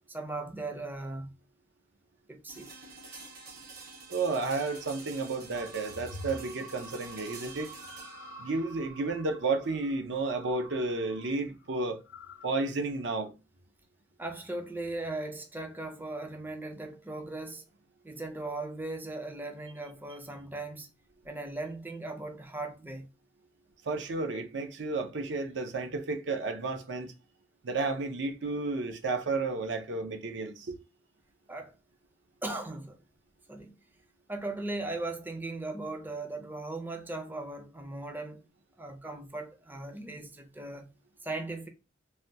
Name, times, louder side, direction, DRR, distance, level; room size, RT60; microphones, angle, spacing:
voice 1, 0.1-1.3 2.3-2.7 14.2-17.6 18.0-20.9 21.2-23.1 31.5-31.7 32.4-33.0 33.5-33.7 34.3-38.5 38.8-40.9 41.2-41.7, right 2 dB, 10° right, 0.4 m, -38 dB
sound 1, 2.5-12.4, right 4 dB, 50° right, 1.2 m, -49 dB
voice 2, 4.1-7.7 8.4-12.0 12.4-13.3 23.8-27.1 27.6-30.8, right 3 dB, 70° right, 0.6 m, -32 dB
sound 2, 5.5-11.3 11.6-12.5 13.0-13.3, equal, 80° left, 0.6 m, -48 dB
3.3 x 2.2 x 2.7 m
head